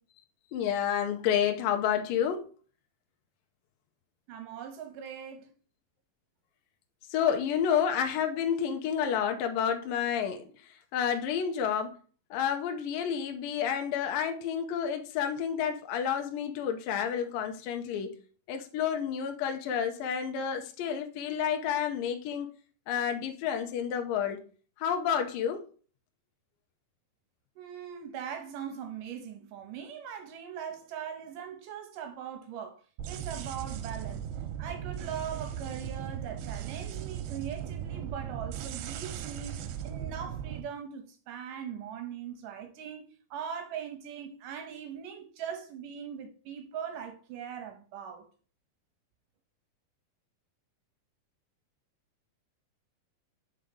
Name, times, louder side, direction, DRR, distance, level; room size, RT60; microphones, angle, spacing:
voice 1, 0.5-2.5 7.1-10.5 10.9-12.0 12.3-18.2 18.5-22.5 22.9-24.4 24.8-25.6, left 8 dB, 75° left, 2.3 m, -30 dB
voice 2, 4.3-5.5 27.6-32.8 33.1-34.3 34.6-43.0 43.3-48.2, right 8 dB, 75° right, 2.1 m, -40 dB
sound 1, 33.0-40.6, right 9 dB, 90° right, 2.6 m, -38 dB
5.4 x 4.7 x 5.1 m
omnidirectional pair, 4.4 m